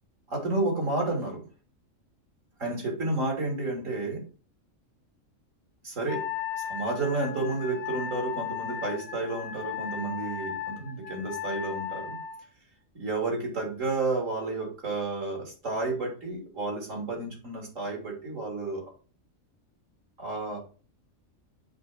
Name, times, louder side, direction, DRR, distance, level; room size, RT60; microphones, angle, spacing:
voice 1, 0.3-1.4 2.6-4.3 5.8-6.3 6.6-12.2 12.9-18.8 20.2-20.6, right 2 dB, 70° right, 0 dB, 3.3 m, -31 dB
Wind instrument woodwind instrument, 6.1-12.4, left 8 dB, 80° left, 1.4 m, -36 dB
7.6 x 3.6 x 6.4 m, 0.38 s
omnidirectional pair, 1.4 m